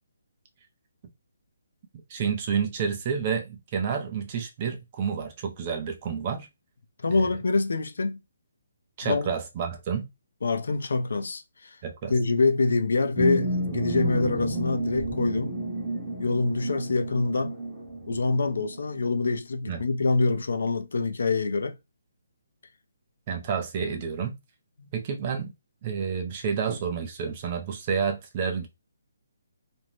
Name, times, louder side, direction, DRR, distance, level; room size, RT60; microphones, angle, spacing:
voice 1, 2.1-6.5 7.1-7.3 9.0-10.1 11.8-12.1 19.7-19.8 23.3-24.4 24.9-25.5 25.8-28.7, right 6 dB, 25° right, 0.5 m, -29 dB
voice 2, 7.0-8.2 9.0-9.3 10.4-11.8 12.1-15.5 16.2-17.6 18.1-21.8 24.8-24.9, left 3 dB, 70° left, 0.5 m, -25 dB
sound 1, 13.2-18.9, right 1 dB, 10° right, 0.8 m, -31 dB
2.6 x 2.1 x 3.0 m
hypercardioid pair, 175°, 0 cm